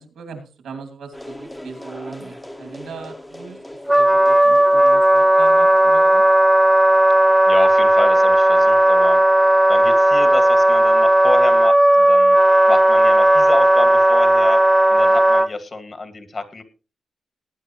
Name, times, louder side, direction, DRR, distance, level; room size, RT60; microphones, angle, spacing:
voice 1, 0.0-3.6 3.9-6.2, right 5 dB, 90° right, 6 dB, 2.5 m, -39 dB
sound 1, 1.1-6.3, left 1 dB, 10° left, 0.9 m, -40 dB
Wind instrument woodwind instrument, 3.9-15.5, right 1 dB, 10° right, 0.4 m, -14 dB
voice 2, 7.5-9.2 9.7-12.4 12.7-14.6 14.9-16.6, left 3 dB, 45° left, 8 dB, 2.2 m, -28 dB
18.5 x 9.3 x 3.1 m, 0.35 s
cardioid pair, 65°, 0 cm